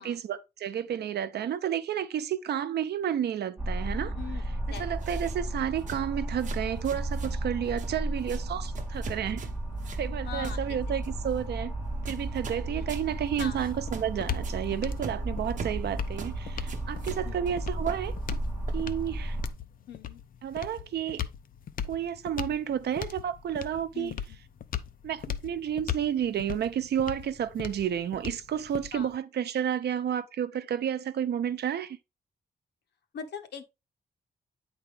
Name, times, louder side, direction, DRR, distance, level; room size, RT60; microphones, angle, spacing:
voice 1, 0.0-4.1 4.7-9.5 10.0-11.7 12.1-18.1 18.7-19.4 20.4-21.2 21.9-24.1 25.0-32.0, right 9 dB, 75° right, 0.7 m, -31 dB
sound 1, 3.6-19.5, right 1 dB, 10° right, 2.1 m, -34 dB
sound 2, 4.7-5.4 5.8-6.1 6.4-7.4 7.7-8.0 8.2-8.5 8.8-10.1 10.4-10.6 11.0-11.3 12.1-12.6 12.9-13.1 13.4-13.5 13.9-14.1 14.4-14.6 15.0-15.8 16.2-16.3 16.6-17.6 17.9-18.8, right 5 dB, 50° right, 1.1 m, -42 dB
voice 2, 10.2-10.8 12.8-12.9 13.4-13.6 17.2-17.5 19.9-20.2 23.9-24.4 28.9-29.1 33.1-33.6, left 7 dB, 80° left, 1.0 m, -41 dB
sound 3, 13.1-29.2, left 9 dB, 55° left, 0.6 m, -39 dB
9.1 x 4.3 x 3.5 m
wide cardioid pair, 155°, 17 cm